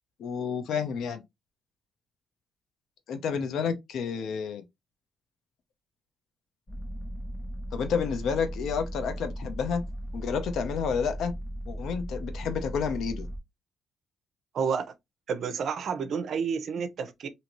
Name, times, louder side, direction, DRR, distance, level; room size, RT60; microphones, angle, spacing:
voice 1, 0.2-1.2 3.1-4.6 7.7-9.8 10.1-11.3 11.7-13.3, left 6 dB, 75° left, 0.6 m, -30 dB
sound 1, 6.7-13.4, equal, 25° left, 1.1 m, -37 dB
voice 2, 14.5-14.9 15.3-17.3, right 6 dB, 60° right, 0.6 m, -30 dB
2.8 x 2.6 x 2.9 m
cardioid pair, 90°, 0 cm